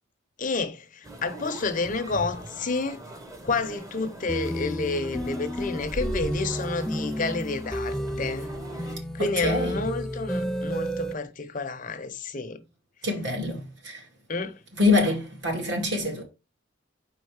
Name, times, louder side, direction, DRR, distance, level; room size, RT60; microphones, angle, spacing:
voice 1, 0.4-3.0 3.4-8.5 8.8-8.9 9.1-12.6 14.3-14.5, left 3 dB, 40° left, 0.7 m, -30 dB
sound 1, 1.0-9.0, right 1 dB, 15° right, 0.9 m, -40 dB
sound 2, 4.3-11.1, equal, 5° left, 0.3 m, -32 dB
voice 2, 9.2-9.8 13.0-14.1 14.7-16.2, left 2 dB, 60° right, 2.2 m, -25 dB
4.9 x 4.7 x 4.8 m
head